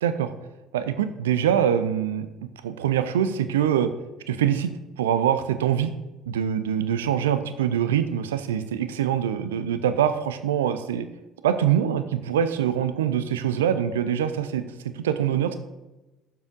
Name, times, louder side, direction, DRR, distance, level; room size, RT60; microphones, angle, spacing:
voice 1, 0.7-2.3 2.6-3.9 4.3-4.7 5.0-5.9 6.3-11.0 11.4-14.6 15.0-15.6, right 9 dB, 70° right, 11 dB, 0.4 m, -24 dB
12.0 x 7.3 x 2.6 m, 1.0 s
figure-of-eight pair, 55°, 0 cm